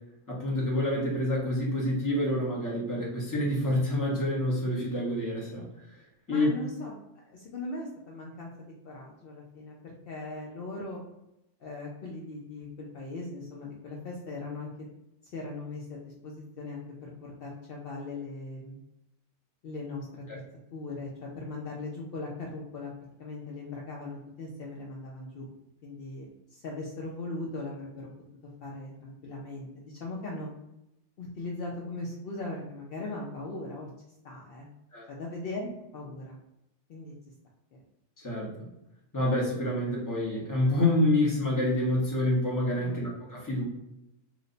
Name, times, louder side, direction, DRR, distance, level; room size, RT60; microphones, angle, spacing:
voice 1, 0.3-5.7 6.3-6.5 34.9-35.1 38.2-38.5 39.1-43.6, left 1 dB, 15° left, -4 dB, 0.7 m, -27 dB
voice 2, 6.3-7.0 7.2-11.0 11.6-14.9 15.3-18.8 19.6-20.4 20.7-22.9 23.2-25.4 25.8-28.1 28.6-30.5 31.2-33.9 34.2-34.7 35.1-36.4 36.9-37.1 37.7-37.8 42.8-42.9, left 2 dB, 80° left, -2 dB, 0.5 m, -39 dB
3.0 x 2.1 x 3.8 m, 0.87 s
omnidirectional pair, 1.6 m